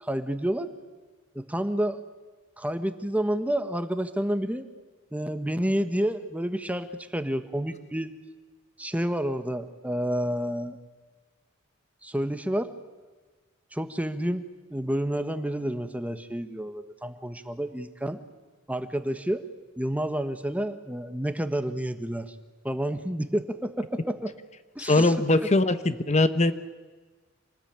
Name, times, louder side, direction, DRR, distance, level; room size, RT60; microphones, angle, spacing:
voice 1, 0.0-0.7 1.3-2.0 2.6-4.6 5.1-6.9 7.1-8.1 8.8-10.8 12.0-12.7 13.7-18.2 18.7-19.4 19.8-22.3 22.6-24.3 24.7-25.1, right 1 dB, 5° right, 10 dB, 1.2 m, -29 dB
voice 2, 24.8-26.5, left 2 dB, 35° left, 11 dB, 1.0 m, -21 dB
26.5 x 19.5 x 8.9 m, 1.3 s
head